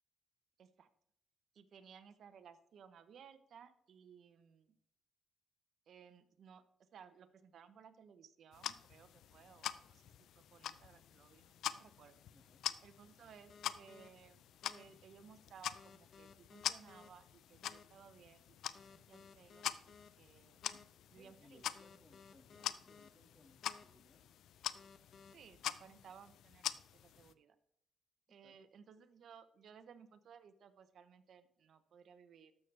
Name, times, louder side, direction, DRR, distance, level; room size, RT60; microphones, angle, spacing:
voice 1, 0.6-0.9 1.5-4.7 5.9-6.6 6.9-10.0 10.5-12.2 12.8-14.4 14.7-20.6 21.1-21.6 25.3-26.7 27.0-27.6 28.3-32.5, right 7 dB, 65° right, 12 dB, 0.9 m, -60 dB
sound 1, 8.5-27.3, left 11 dB, 80° left, 0.4 m, -46 dB
voice 2, 12.3-12.6 20.6-20.8 21.1-24.3 28.3-28.6, left 1 dB, 20° left, 4 dB, 2.0 m, -66 dB
sound 2, 13.5-14.1 14.6-14.8 15.7-17.1 17.6-17.8 18.7-20.1 20.6-20.8 21.7-23.1 23.6-23.8 24.7-25.3, left 5 dB, 55° left, 0.9 m, -59 dB
13.0 x 6.7 x 3.4 m, 0.72 s
cardioid pair, 110°, 0 cm